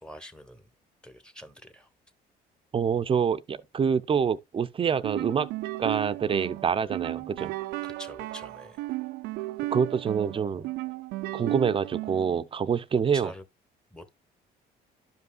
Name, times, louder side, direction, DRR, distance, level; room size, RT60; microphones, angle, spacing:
voice 1, 0.0-0.7 1.0-1.9 7.8-8.9 12.9-13.4 13.9-14.1, equal, 5° left, 1.0 m, -45 dB
voice 2, 2.7-5.5 5.8-7.5 9.7-10.7 11.3-13.3, right 6 dB, 30° right, 0.6 m, -26 dB
sound 1, 5.0-12.4, right 18 dB, 85° right, 0.4 m, -35 dB
12.0 x 5.4 x 2.3 m
cardioid pair, 110°, 17 cm